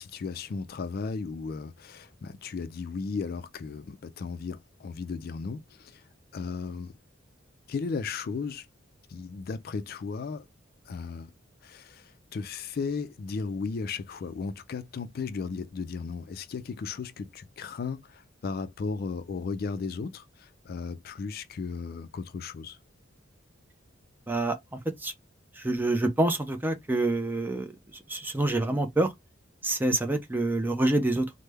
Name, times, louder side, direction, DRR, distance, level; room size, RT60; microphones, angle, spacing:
voice 1, 0.0-6.0 6.3-6.9 7.7-8.7 9.1-10.5 10.9-11.3 11.6-22.8, left 4 dB, 50° left, 0.3 m, -35 dB
voice 2, 24.3-24.6 25.0-25.1 25.6-27.7 28.1-29.1 29.6-31.3, right 2 dB, 10° right, 0.5 m, -26 dB
3.2 x 2.1 x 3.3 m
head